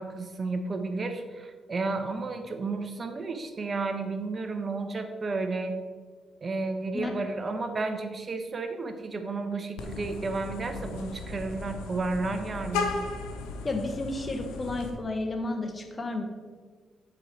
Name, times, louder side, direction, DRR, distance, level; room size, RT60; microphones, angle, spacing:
voice 1, 0.0-5.8 6.4-12.9, right 3 dB, 45° right, 6 dB, 0.9 m, -32 dB
Vehicle horn car horn honking, 9.8-14.9, left 4 dB, 90° left, 0.6 m, -36 dB
voice 2, 13.6-16.2, left 2 dB, 35° left, 4 dB, 1.2 m, -32 dB
7.5 x 4.8 x 4.4 m, 1.5 s
supercardioid pair, 55°, 0 cm